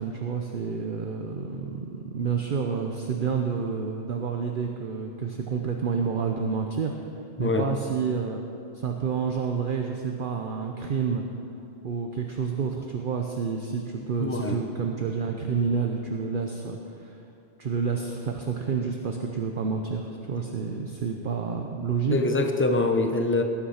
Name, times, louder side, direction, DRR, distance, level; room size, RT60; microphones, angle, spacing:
voice 1, 0.0-6.9 7.4-8.4 8.7-11.2 11.8-17.2 17.6-22.2, right 5 dB, 50° right, 3 dB, 0.9 m, -29 dB
voice 2, 7.4-7.7 14.2-14.6 22.1-23.4, left 2 dB, 10° left, 5 dB, 0.9 m, -24 dB
19.0 x 8.7 x 5.7 m, 2.6 s
omnidirectional pair, 1.2 m